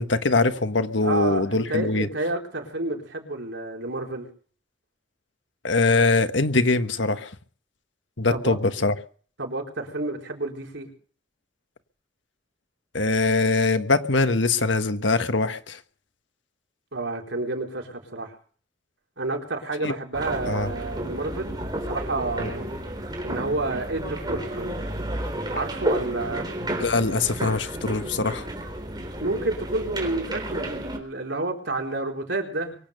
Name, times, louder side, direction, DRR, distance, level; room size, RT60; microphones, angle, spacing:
voice 1, 0.0-2.1 5.6-7.3 8.2-8.9 12.9-15.8 19.8-19.9 20.5-20.7 22.4-22.5 26.6-28.5, left 3 dB, 85° left, 1.4 m, -23 dB
voice 2, 1.0-4.3 8.3-8.6 9.4-10.9 16.9-18.3 19.2-22.7 23.2-24.8 25.5-26.5 29.2-32.8, right 2 dB, 85° right, 4.2 m, -30 dB
sound 1, 20.1-31.0, right 1 dB, 25° right, 3.9 m, -32 dB
23.5 x 8.8 x 6.7 m
head